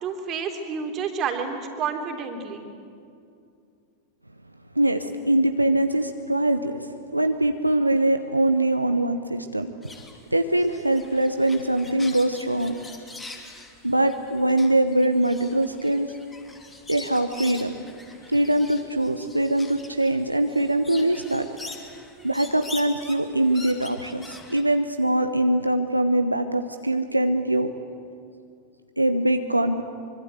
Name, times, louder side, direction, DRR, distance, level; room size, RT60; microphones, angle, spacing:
voice 1, 0.0-2.7, right 6 dB, 30° right, 4 dB, 3.3 m, -29 dB
voice 2, 4.8-6.9 7.1-9.7 10.3-12.7 13.8-16.1 16.9-17.8 18.3-21.5 22.2-27.7 29.0-29.8, right 1 dB, 85° right, 7 dB, 0.9 m, -22 dB
sound 1, 9.8-24.6, left 2 dB, 15° left, 3.1 m, -43 dB
24.5 x 24.5 x 8.2 m, 2.4 s
figure-of-eight pair, 90°, 0 cm